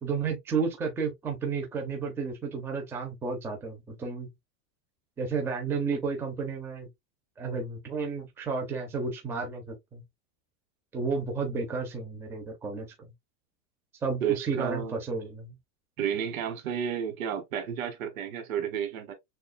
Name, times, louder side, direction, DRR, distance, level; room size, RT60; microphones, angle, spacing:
voice 1, 0.0-4.3 5.2-6.9 7.4-10.0 10.9-13.1 14.0-15.6, right 4 dB, 5° right, 0.5 m, -32 dB
voice 2, 14.2-15.0 16.0-19.1, right 8 dB, 85° right, 1.6 m, -31 dB
6.6 x 2.4 x 2.2 m
supercardioid pair, 170°, 40 cm